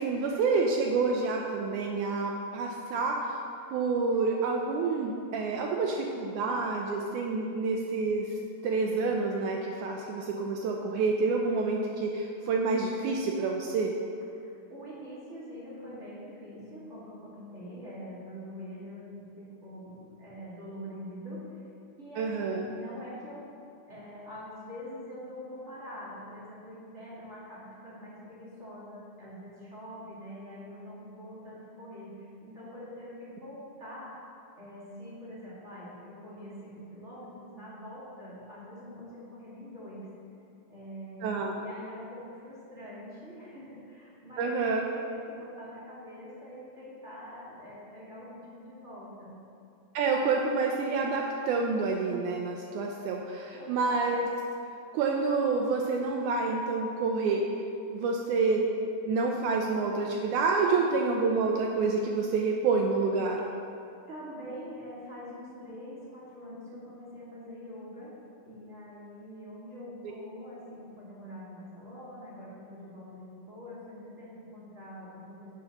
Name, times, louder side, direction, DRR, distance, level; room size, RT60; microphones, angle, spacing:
voice 1, 0.0-3.4 3.7-14.0 22.2-22.7 41.2-41.6 44.4-44.8 49.9-54.3 54.9-57.5 57.9-58.7 59.0-63.4, right 4 dB, 80° right, 1 dB, 1.8 m, -28 dB
voice 2, 14.4-21.6 22.0-23.4 23.9-34.2 34.5-40.1 40.7-41.2 41.6-49.3 53.5-54.1 64.1-68.1 68.4-75.5, equal, 30° right, -9 dB, 1.4 m, -44 dB
11.0 x 6.5 x 2.9 m, 2.5 s
omnidirectional pair, 3.9 m